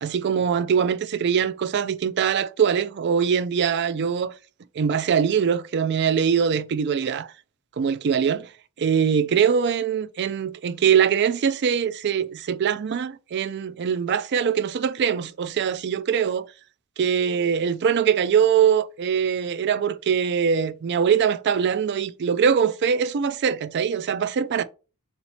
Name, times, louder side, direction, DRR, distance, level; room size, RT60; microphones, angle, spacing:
voice 1, 0.0-4.3 4.8-7.3 7.8-8.5 8.8-16.5 17.0-24.6, right 7 dB, 50° right, 0.3 m, -22 dB
3.9 x 2.9 x 4.3 m
head